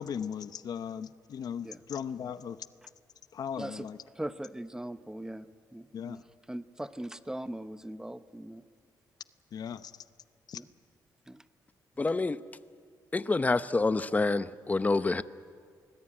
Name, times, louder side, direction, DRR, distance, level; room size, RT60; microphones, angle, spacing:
voice 1, 0.0-2.6 3.3-4.0 5.9-6.2 9.5-9.9 10.5-10.6, left 8 dB, 65° left, 13 dB, 0.8 m, -37 dB
voice 2, 3.6-3.9 4.2-5.5 5.7-8.6 10.5-10.7 11.3-11.4 12.0-12.1, right 1 dB, 10° right, 12 dB, 0.9 m, -40 dB
voice 3, 12.0-12.4 13.1-15.2, left 3 dB, 20° left, 13 dB, 0.8 m, -27 dB
25.0 x 20.0 x 8.9 m, 2.1 s
cardioid pair, 90°, 7 cm